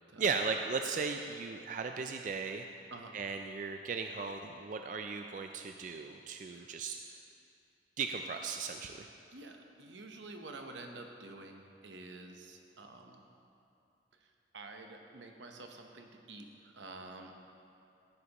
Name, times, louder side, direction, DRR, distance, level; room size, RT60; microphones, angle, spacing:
voice 1, 0.2-2.7 3.1-7.0 8.0-9.1, right 5 dB, 45° right, 5 dB, 0.3 m, -36 dB
voice 2, 9.3-13.2 14.5-17.3, right 2 dB, 85° right, 3 dB, 0.9 m, -49 dB
15.0 x 8.0 x 3.0 m, 2.6 s
head